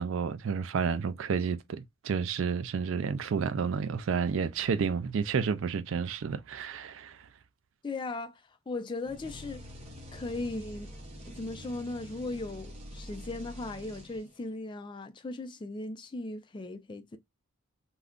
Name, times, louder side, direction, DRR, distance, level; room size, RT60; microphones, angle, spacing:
voice 1, 0.0-7.3, right 6 dB, 65° right, 0.3 m, -30 dB
voice 2, 7.8-9.6 10.1-10.9 11.3-17.2, left 2 dB, 20° left, 0.3 m, -38 dB
sound 1, 9.1-14.5, equal, 30° right, 0.7 m, -46 dB
2.4 x 2.2 x 3.5 m
head